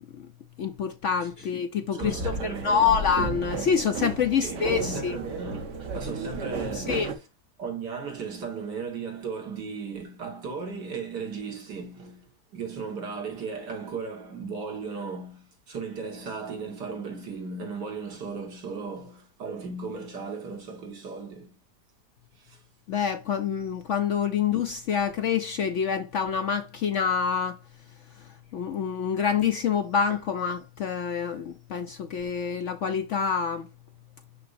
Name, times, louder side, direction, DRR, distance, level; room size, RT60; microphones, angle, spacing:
voice 1, 0.6-5.2 6.8-7.1 22.9-27.6 28.5-33.7, left 7 dB, 65° left, 0.7 m, -26 dB
voice 2, 1.9-3.0 4.4-7.3 7.6-21.5 22.4-22.6, right 5 dB, 80° right, 2.4 m, -36 dB
sound 1, 2.0-7.2, right 3 dB, 50° right, 1.2 m, -33 dB
6.6 x 5.7 x 2.6 m
omnidirectional pair, 1.8 m